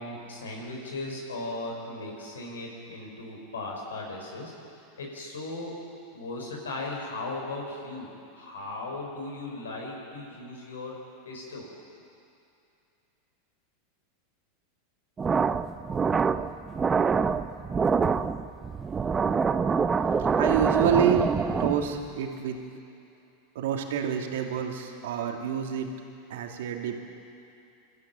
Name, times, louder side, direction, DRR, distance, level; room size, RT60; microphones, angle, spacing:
voice 1, 0.0-4.5 5.0-5.7 6.1-10.9 11.2-11.7, left 2 dB, 90° left, -1 dB, 5.1 m, -37 dB
sound 1, 15.2-22.0, right 5 dB, 20° right, 0.7 m, -25 dB
voice 2, 20.4-21.3 21.6-22.6 23.6-25.9 26.3-27.0, right 8 dB, 75° right, 2 dB, 2.5 m, -27 dB
23.5 x 14.0 x 9.2 m, 2.6 s
hypercardioid pair, 105°, 0 cm